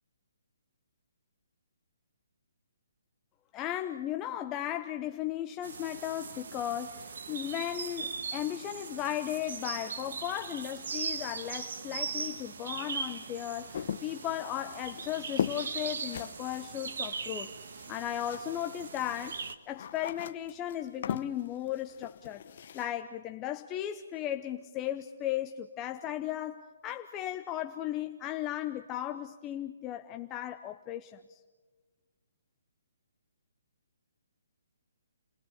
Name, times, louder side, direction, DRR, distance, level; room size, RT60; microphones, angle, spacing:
voice 1, 3.5-17.5 17.9-19.4 19.7-22.4 22.7-31.4, left 12 dB, 20° left, 6 dB, 0.8 m, -36 dB
sound 1, 5.6-19.5, right 5 dB, 65° right, 1.6 m, -40 dB
sound 2, 13.7-18.7 18.9-22.9, left 8 dB, 50° left, 0.9 m, -39 dB
30.0 x 17.5 x 7.2 m, 1.3 s
hypercardioid pair, 150°, 0 cm